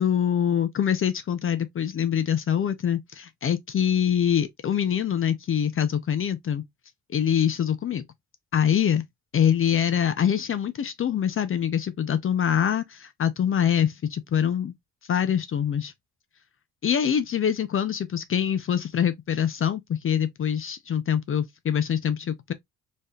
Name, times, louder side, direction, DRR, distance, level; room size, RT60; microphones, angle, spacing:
voice 1, 0.0-6.6 7.1-8.0 8.5-9.0 9.3-14.7 15.1-15.9 16.8-22.5, left 9 dB, 45° left, 0.6 m, -24 dB
4.2 x 3.5 x 2.3 m
cardioid pair, 90°, 30 cm